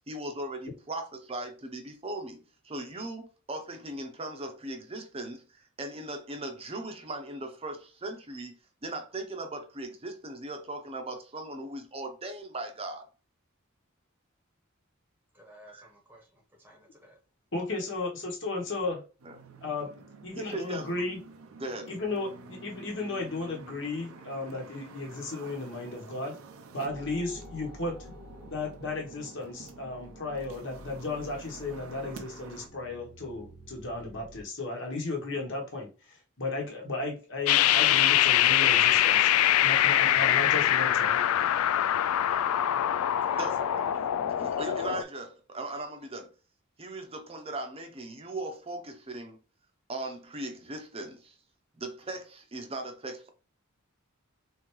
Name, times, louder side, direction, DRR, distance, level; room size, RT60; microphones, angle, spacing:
voice 1, 0.1-13.1 15.7-15.9 19.2-19.4 20.4-20.9 21.6-21.9 43.3-43.5 44.0-46.3 46.8-49.4 49.9-51.3 51.8-53.3, right 2 dB, 25° right, 0.7 m, -38 dB
voice 2, 15.3-17.2 43.2-44.1 45.5-45.6, right 1 dB, 10° right, 1.0 m, -49 dB
voice 3, 17.5-19.0 19.6-19.9 20.2-21.2 21.9-26.4 26.7-28.0 28.5-39.3 39.6-41.2, left 2 dB, 60° left, 1.2 m, -35 dB
sound 1, 19.2-32.7, right 3 dB, 80° right, 0.6 m, -49 dB
sound 2, 26.9-34.4, equal, 45° left, 0.8 m, -50 dB
sound 3, 37.5-45.0, left 12 dB, 80° left, 0.3 m, -23 dB
3.7 x 3.4 x 3.1 m
head